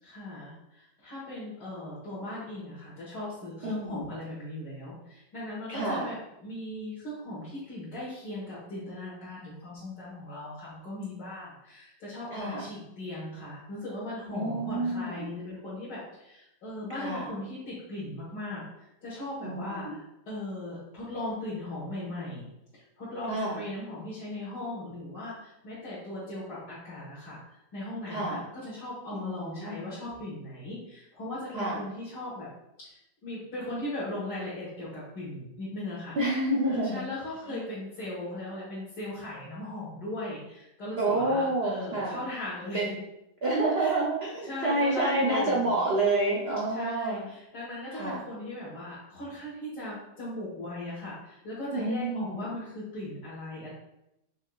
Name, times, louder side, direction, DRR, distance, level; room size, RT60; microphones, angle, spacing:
voice 1, 0.0-22.5 22.7-32.5 32.8-42.9 43.8-44.0 44.4-45.8 46.7-53.7, left 1 dB, 70° left, -10 dB, 2.0 m, -38 dB
voice 2, 3.6-4.0 5.7-6.1 12.3-12.6 14.3-15.3 17.0-17.3 19.4-19.9 23.3-23.6 28.1-28.4 29.1-29.8 31.5-31.8 36.2-37.0 37.5-37.6 41.0-42.2 42.7-42.9 43.4-47.2 47.9-48.2 51.7-52.5, right 2 dB, 65° right, -4 dB, 0.6 m, -28 dB
5.4 x 3.2 x 2.3 m, 0.86 s
omnidirectional pair, 1.9 m